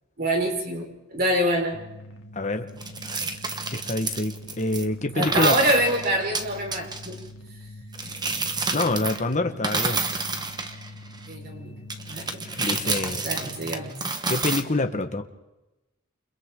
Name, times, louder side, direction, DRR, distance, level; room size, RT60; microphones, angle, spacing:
voice 1, 0.2-1.8 5.1-7.2 11.3-11.8 12.1-14.0, right 1 dB, 50° right, 0 dB, 4.9 m, -26 dB
sound 1, 1.7-13.9, left 2 dB, 80° left, 2.4 m, -44 dB
voice 2, 2.3-2.7 3.7-5.6 8.7-10.0 12.6-13.3 14.3-15.2, left 2 dB, 35° left, 6 dB, 1.4 m, -26 dB
sound 2, 2.8-4.8 5.2-7.2 7.9-9.3 9.6-11.3 11.9-14.6, right 3 dB, 20° right, 1.3 m, -29 dB
29.5 x 29.0 x 3.8 m, 1.0 s
head